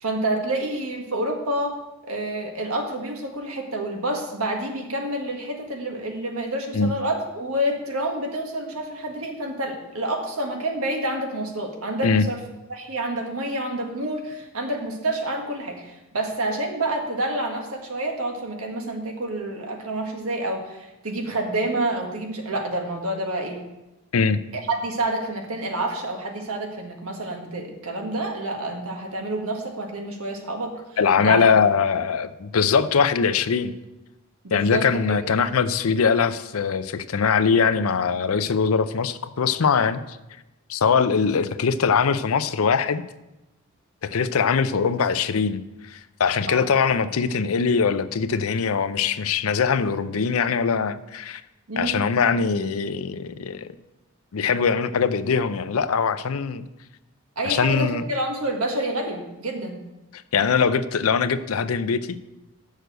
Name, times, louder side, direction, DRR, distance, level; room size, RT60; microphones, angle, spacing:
voice 1, 0.0-1.8 2.0-12.4 12.7-23.6 24.7-30.7 31.2-31.7 34.4-34.9 46.5-46.7 51.7-52.1 57.4-59.8, right 1 dB, 80° right, 2 dB, 1.7 m, -28 dB
voice 2, 31.0-33.7 34.5-40.0 40.7-43.0 44.0-45.6 45.9-51.4 51.8-53.7 54.3-56.6 57.4-58.0 60.3-62.1, left 5 dB, 75° left, 13 dB, 0.5 m, -22 dB
6.7 x 6.5 x 7.6 m, 0.99 s
head